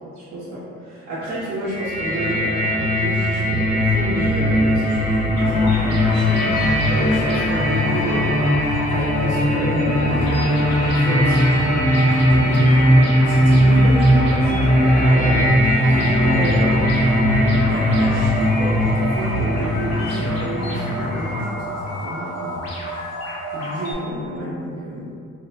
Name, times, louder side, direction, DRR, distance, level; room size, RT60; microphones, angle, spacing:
voice 1, 0.2-8.3 8.9-22.5 22.9-23.0 23.5-25.1, equal, 55° right, -11 dB, 0.8 m, -29 dB
sound 1, 1.6-21.4, equal, 30° left, 0.6 m, -18 dB
sound 2, 5.4-23.9, equal, 55° left, 1.0 m, -30 dB
2.7 x 2.1 x 3.7 m, 2.4 s
cardioid pair, 90°, 30 cm